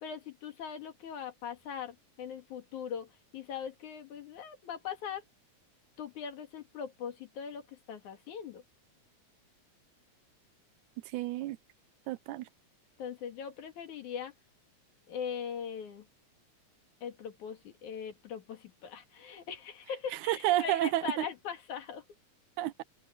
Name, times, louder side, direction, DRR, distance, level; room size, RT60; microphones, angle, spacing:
voice 1, 0.0-5.2 6.0-8.6 13.0-14.3 15.1-16.1 17.0-22.1, left 7 dB, 80° left, 3.6 m, -41 dB
voice 2, 11.1-11.6 12.1-12.5 20.1-21.3 22.6-22.8, right 14 dB, 85° right, 2.1 m, -30 dB
omnidirectional pair, 3.4 m